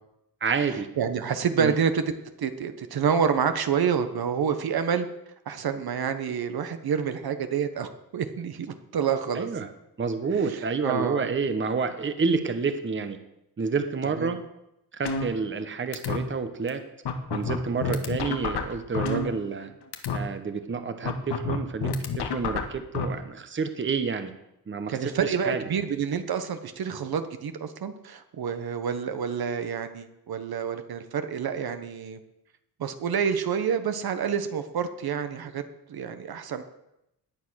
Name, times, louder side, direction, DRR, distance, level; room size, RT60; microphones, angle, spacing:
voice 1, 0.4-0.9 1.6-1.7 9.3-9.7 10.0-13.2 13.6-14.4 14.9-16.8 17.3-19.7 20.1-24.3 24.7-25.6, right 5 dB, 30° right, 9 dB, 1.2 m, -29 dB
voice 2, 1.0-2.0 2.4-5.1 5.5-9.5 10.5-11.3 14.2-14.3 24.9-32.2 32.8-35.6 35.9-36.6, right 7 dB, 65° right, 9 dB, 1.3 m, -28 dB
sound 1, 15.1-15.7 15.9-16.2 16.7-16.8 17.1-19.7 19.9-20.2 21.1-23.0, left 5 dB, 75° left, 1.8 m, -29 dB
17.5 x 10.0 x 6.4 m, 0.85 s
wide cardioid pair, 155°, 40 cm